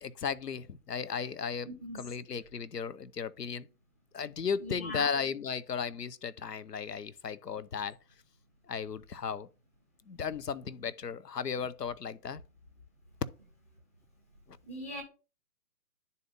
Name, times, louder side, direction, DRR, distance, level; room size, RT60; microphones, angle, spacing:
voice 1, 0.0-3.7 4.1-8.0 8.7-9.5 10.1-12.4 14.5-14.6, left 6 dB, 85° left, 0.6 m, -35 dB
voice 2, 1.7-2.0 4.6-5.1 14.7-15.0, equal, 10° left, 0.6 m, -40 dB
11.5 x 4.1 x 2.5 m
figure-of-eight pair, 135°, 47 cm